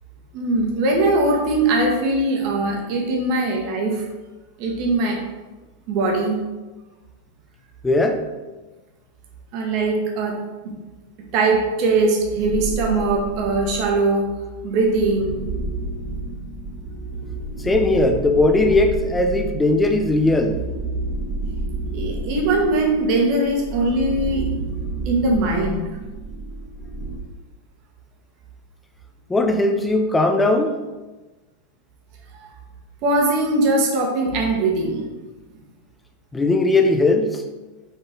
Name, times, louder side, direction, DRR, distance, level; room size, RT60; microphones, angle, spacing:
voice 1, 0.3-4.0 4.6-5.2 5.9-6.4 9.5-10.4 10.6-10.7 11.3-14.3 14.6-15.4 21.9-24.5 25.0-25.9 32.3-32.5 33.0-35.1, right 2 dB, 45° right, 1 dB, 1.4 m, -21 dB
voice 2, 7.8-8.2 17.6-20.6 29.3-30.8 36.3-37.4, left 2 dB, 10° left, 5 dB, 0.7 m, -18 dB
sound 1, 12.3-14.0 14.6-27.2, right 2 dB, 15° right, 1.4 m, -30 dB
5.6 x 5.5 x 4.0 m, 1.2 s
figure-of-eight pair, 90°, 0 cm